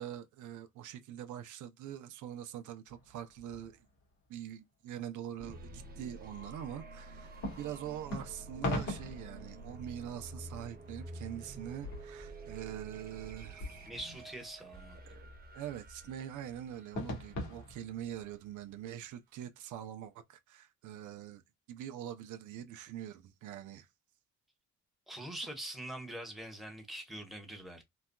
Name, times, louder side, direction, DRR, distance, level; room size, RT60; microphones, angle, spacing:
voice 1, 0.0-3.9 4.3-13.8 15.0-21.4 21.7-23.9, right 11 dB, 75° right, 0.6 m, -44 dB
sound 1, 2.9-4.3 7.4-10.5 10.9-11.0 11.3-11.4 11.7-12.8 13.6-14.6 16.9-18.8, left 1 dB, 75° left, 1.7 m, -42 dB
sound 2, 5.4-18.1, right 2 dB, 30° right, 1.0 m, -49 dB
voice 2, 13.8-15.0 25.1-27.8, right 1 dB, ahead, 1.1 m, -43 dB
4.0 x 2.2 x 2.2 m
cardioid pair, 90°, 30 cm